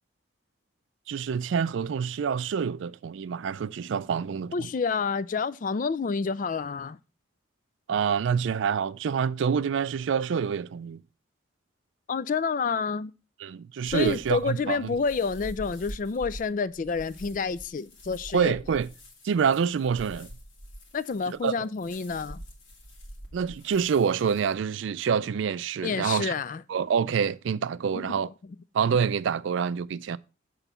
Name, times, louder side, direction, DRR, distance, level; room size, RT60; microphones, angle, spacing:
voice 1, 1.1-4.7 7.9-11.0 13.4-14.8 18.3-18.9 19.2-20.3 21.3-21.5 23.3-26.3 26.7-28.3 28.7-30.2, right 6 dB, 70° right, 0.3 m, -27 dB
voice 2, 4.5-7.0 12.1-13.1 13.9-18.6 20.9-22.4 25.8-26.6 27.9-28.1, left 5 dB, 40° left, 0.3 m, -29 dB
sound 1, 13.9-24.5, equal, 75° left, 2.3 m, -45 dB
8.1 x 3.9 x 5.5 m
head